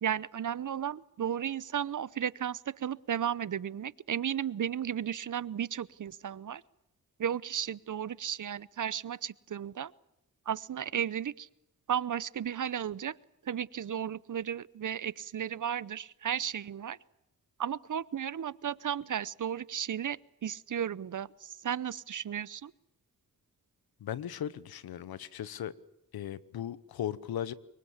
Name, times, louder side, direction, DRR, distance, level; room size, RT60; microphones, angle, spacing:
voice 1, 0.0-6.6 7.2-9.9 10.5-11.5 11.9-13.2 13.4-17.0 17.6-22.7, right 9 dB, 60° right, 0.8 m, -34 dB
voice 2, 24.0-25.7 26.1-27.5, left 10 dB, 90° left, 0.9 m, -37 dB
25.0 x 23.0 x 7.3 m
cardioid pair, 45°, 36 cm